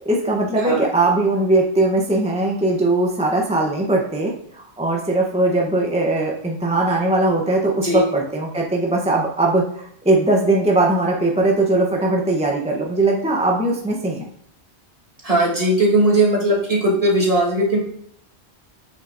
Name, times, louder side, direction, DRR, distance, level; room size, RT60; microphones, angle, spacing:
voice 1, 0.1-14.2, right 2 dB, 5° right, -2 dB, 0.7 m, -20 dB
voice 2, 7.7-8.0 15.2-17.8, right 1 dB, 35° right, -3 dB, 1.6 m, -18 dB
7.4 x 6.5 x 2.5 m, 0.66 s
omnidirectional pair, 1.1 m